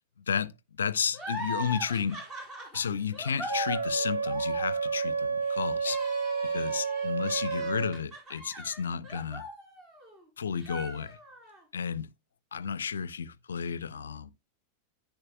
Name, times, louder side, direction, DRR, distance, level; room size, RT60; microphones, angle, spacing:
voice 1, 0.8-2.2 2.7-9.4 10.4-11.2 11.7-12.1 12.5-14.3, left 7 dB, 70° left, 0.5 m, -32 dB
sound 1, 1.1-10.2 10.6-11.6, equal, 25° right, 4.6 m, -40 dB
Wind instrument woodwind instrument, 3.5-8.0, right 5 dB, 85° right, 1.2 m, -30 dB
10.5 x 9.1 x 2.2 m
figure-of-eight pair, 90°, 0 cm